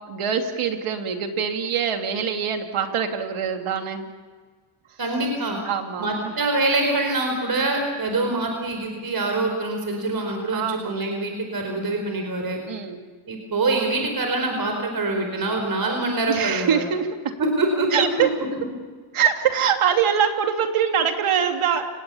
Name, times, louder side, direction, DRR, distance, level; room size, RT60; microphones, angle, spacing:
voice 1, 0.0-4.1 4.9-5.0 5.6-6.3 10.5-10.9 12.6-13.0 16.3-17.4 17.9-18.3 19.1-21.9, right 8 dB, 85° right, 4 dB, 2.9 m, -24 dB
voice 2, 5.0-5.6 6.0-12.6 13.3-16.8 17.4-18.1, right 2 dB, 45° right, 3 dB, 4.8 m, -24 dB
29.5 x 19.0 x 7.2 m, 1.5 s
cardioid pair, 100°, 49 cm